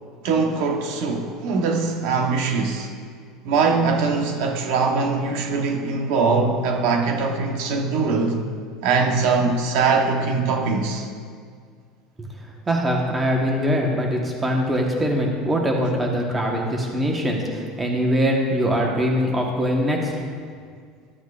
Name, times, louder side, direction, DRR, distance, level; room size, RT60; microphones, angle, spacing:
voice 1, 0.2-2.9 3.4-8.4 8.8-11.1, right 4 dB, 70° right, 1.0 m, -22 dB
voice 2, 12.7-20.1, equal, 15° right, 1.2 m, -22 dB
13.5 x 9.0 x 2.5 m
cardioid pair, 150°, 0 cm